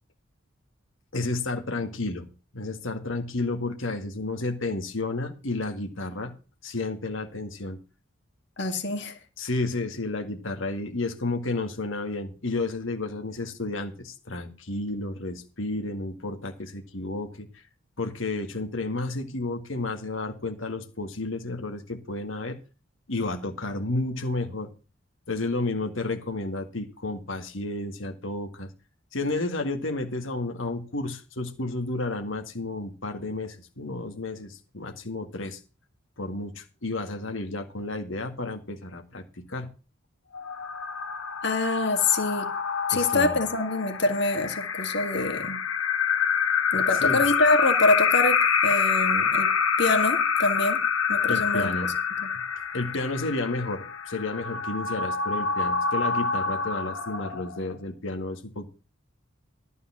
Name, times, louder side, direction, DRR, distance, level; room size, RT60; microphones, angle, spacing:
voice 1, 1.1-2.3 2.5-6.3 6.6-7.8 9.4-17.5 18.0-22.6 23.1-24.7 25.3-28.7 29.1-35.6 36.2-39.7 42.9-43.5 47.0-47.3 51.3-51.9 52.7-58.7, left 2 dB, 70° left, 5 dB, 2.0 m, -31 dB
voice 2, 8.6-9.2 41.4-42.5 42.9-45.6 46.7-49.5 49.8-50.8 51.1-51.9 52.2-52.3, left 2 dB, 55° left, 5 dB, 2.1 m, -25 dB
sound 1, 40.3-57.7, left 6 dB, 85° left, 1.5 m, -26 dB
12.5 x 5.4 x 7.4 m, 0.34 s
head